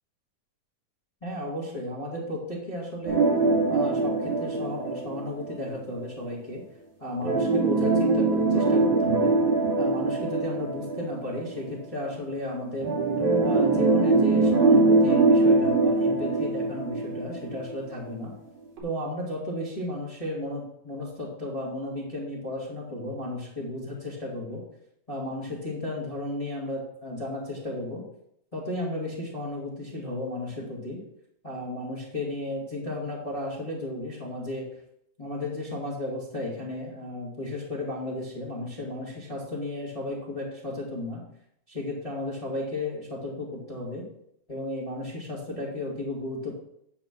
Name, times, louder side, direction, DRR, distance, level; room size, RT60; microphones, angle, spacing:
voice 1, 1.2-3.2 3.7-6.6 7.0-9.3 9.8-12.9 13.4-18.3 18.8-24.6 25.1-28.0 28.5-31.0 31.4-34.7 35.2-41.2 41.7-44.0 44.5-46.5, left 1 dB, 15° left, -5 dB, 1.9 m, -34 dB
sound 1, 3.1-5.7 7.2-11.6 12.8-17.7 18.1-18.2 18.8-18.9, right 3 dB, 80° right, 3.7 m, -22 dB
11.0 x 4.2 x 6.1 m, 0.73 s
omnidirectional pair, 3.5 m